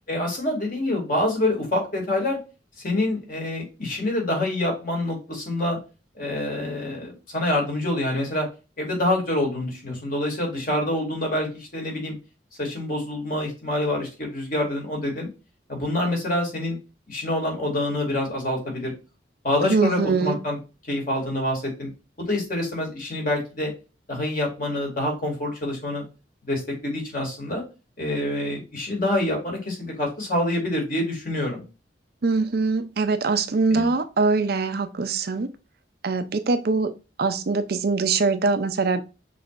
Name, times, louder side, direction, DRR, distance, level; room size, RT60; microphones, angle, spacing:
voice 1, 0.1-2.4 2.8-5.8 6.2-8.5 8.8-12.1 12.6-15.3 15.7-16.8 17.1-18.9 19.4-20.6 20.9-21.9 22.2-23.7 24.1-26.0 26.4-27.6 28.0-31.6 33.7-33.9, left 1 dB, 50° left, 0 dB, 2.4 m, -26 dB
voice 2, 19.6-20.4 32.2-35.5 36.0-36.9 37.2-39.0, right 4 dB, 55° right, 9 dB, 0.5 m, -23 dB
6.2 x 3.3 x 2.5 m, 0.30 s
head